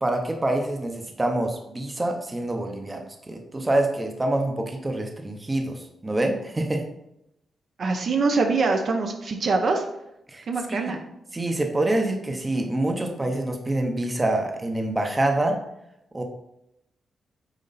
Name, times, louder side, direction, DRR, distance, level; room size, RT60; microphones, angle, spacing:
voice 1, 0.0-6.8 10.3-10.9 11.3-15.6 16.1-16.2, right 1 dB, 15° right, 3 dB, 0.8 m, -26 dB
voice 2, 7.8-9.8 10.5-11.0, right 3 dB, 45° right, 4 dB, 0.7 m, -24 dB
9.0 x 4.3 x 4.2 m, 0.84 s
wide cardioid pair, 180°, 0 cm